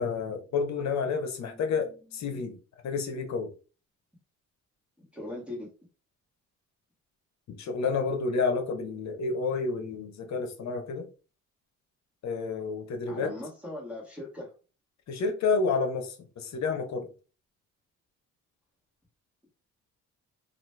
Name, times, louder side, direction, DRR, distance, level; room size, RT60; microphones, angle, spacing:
voice 1, 0.0-2.6 2.8-3.5 7.6-11.1 12.2-13.3 15.1-17.1, left 4 dB, 65° left, 5 dB, 0.9 m, -30 dB
voice 2, 1.4-2.0 5.0-5.7 13.1-14.5, left 1 dB, 5° right, -5 dB, 1.4 m, -41 dB
3.0 x 2.5 x 3.2 m, 0.35 s
cardioid pair, 90°, 30 cm